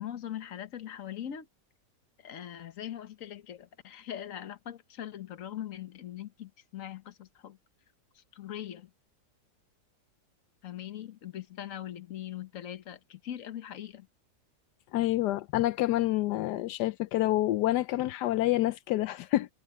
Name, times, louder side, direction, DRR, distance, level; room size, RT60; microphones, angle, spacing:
voice 1, 0.0-1.5 2.2-7.6 8.1-8.9 10.6-14.1, left 11 dB, 55° left, 1.4 m, -41 dB
voice 2, 14.9-19.5, left 15 dB, 85° left, 1.2 m, -28 dB
omnidirectional pair, 1.8 m